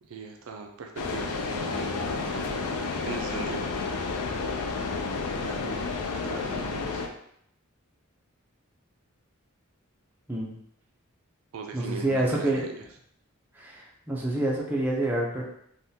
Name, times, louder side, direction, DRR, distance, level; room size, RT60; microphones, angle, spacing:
voice 1, 0.0-2.7 3.0-3.6 5.3-7.1 11.5-12.8, right 4 dB, 65° right, 3 dB, 0.4 m, -39 dB
sound 1, 1.0-7.1, left 4 dB, 80° left, 0.4 m, -31 dB
voice 2, 11.7-12.6 13.6-13.8 14.1-15.4, right 1 dB, 10° right, -4 dB, 0.5 m, -27 dB
3.5 x 2.3 x 2.7 m, 0.70 s
head